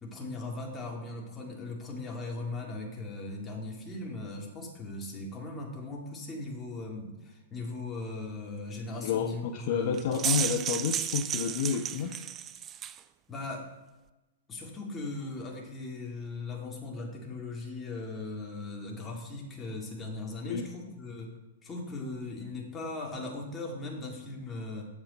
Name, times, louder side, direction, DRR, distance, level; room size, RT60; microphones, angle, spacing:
voice 1, 0.0-10.0 13.3-13.7 14.5-21.3 21.6-24.9, left 2 dB, 20° left, -1 dB, 2.1 m, -38 dB
voice 2, 9.0-12.2 20.4-20.7, left 7 dB, 50° left, 6 dB, 0.6 m, -30 dB
sound 1, 9.9-13.0, right 9 dB, 25° right, 0.4 m, -33 dB
8.2 x 7.1 x 4.2 m, 1.1 s
figure-of-eight pair, 110°, 0 cm